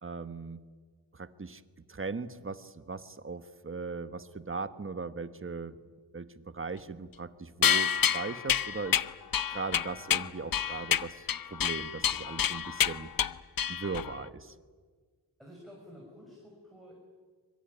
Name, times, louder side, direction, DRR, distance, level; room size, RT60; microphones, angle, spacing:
voice 1, 0.0-0.6 1.1-1.6 1.9-5.8 6.1-9.0 9.5-13.1 13.7-14.5, right 4 dB, 30° right, 12 dB, 1.2 m, -39 dB
sound 1, 7.6-14.2, left 8 dB, 55° left, 0.7 m, -29 dB
voice 2, 15.4-16.9, equal, ahead, -2 dB, 5.9 m, -51 dB
24.0 x 23.0 x 9.2 m, 1.5 s
wide cardioid pair, 125°, 41 cm